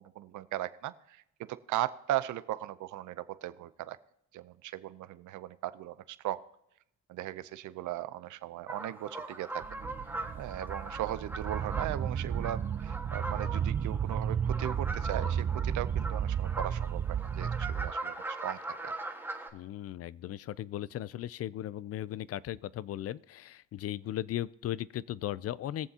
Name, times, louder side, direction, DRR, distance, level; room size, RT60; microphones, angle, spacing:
voice 1, 0.0-4.0 4.3-6.4 7.1-9.7 10.4-18.9, right 13 dB, 75° right, 15 dB, 0.6 m, -38 dB
sound 1, 8.7-19.5, right 2 dB, 5° right, 1.6 m, -41 dB
sound 2, 9.6-17.9, right 8 dB, 30° right, 0.4 m, -33 dB
voice 2, 19.5-25.9, left 12 dB, 55° left, 21 dB, 0.4 m, -37 dB
21.0 x 7.2 x 2.8 m, 0.78 s
cardioid pair, 90°, 30 cm